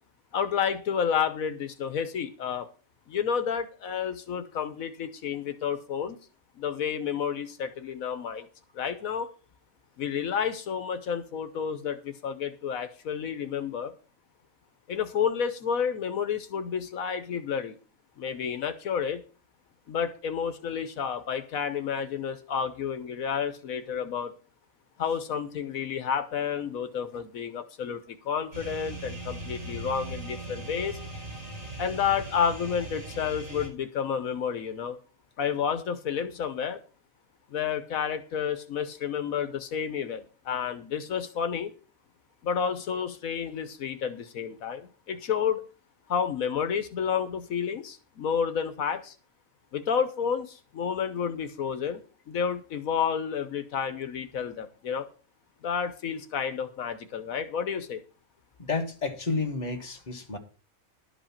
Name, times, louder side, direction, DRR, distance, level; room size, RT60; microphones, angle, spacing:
voice 1, 0.3-2.7 3.1-6.2 6.6-8.5 8.7-9.3 10.0-13.9 14.9-17.7 18.2-19.2 19.9-24.3 25.0-31.0 31.8-35.0 35.4-36.8 37.5-41.7 42.4-45.6 46.1-49.1 49.7-55.1 55.6-58.0, left 7 dB, 80° left, 10 dB, 1.3 m, -30 dB
sound 1, 28.5-33.7, right 2 dB, 60° right, 6.9 m, -39 dB
voice 2, 58.7-60.4, left 4 dB, 30° left, 3 dB, 1.7 m, -30 dB
12.0 x 5.3 x 7.2 m, 0.37 s
omnidirectional pair, 1.4 m